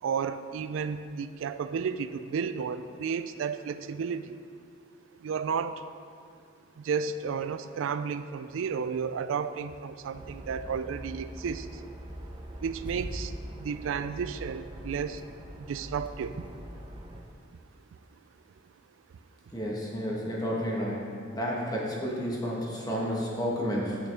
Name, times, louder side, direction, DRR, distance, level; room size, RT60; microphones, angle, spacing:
voice 1, 0.0-4.4 5.2-5.9 6.8-11.8 12.6-15.2 15.6-16.5 17.9-18.0, right 6 dB, 80° right, 12 dB, 0.3 m, -32 dB
sound 1, 10.1-17.2, equal, 25° right, 0.7 m, -42 dB
voice 2, 19.5-21.0 21.3-24.0, equal, 20° left, -3 dB, 1.3 m, -31 dB
8.7 x 6.3 x 3.4 m, 2.3 s
head